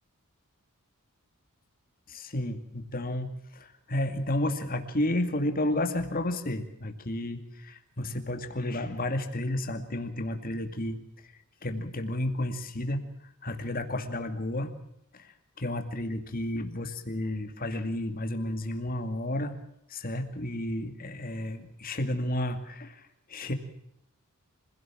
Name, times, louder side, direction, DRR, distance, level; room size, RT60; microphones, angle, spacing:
voice 1, 2.1-11.0 11.6-13.1 13.4-14.7 15.1-19.6 19.9-23.5, left 1 dB, 40° left, 7 dB, 2.3 m, -32 dB
25.5 x 16.5 x 7.4 m, 0.77 s
head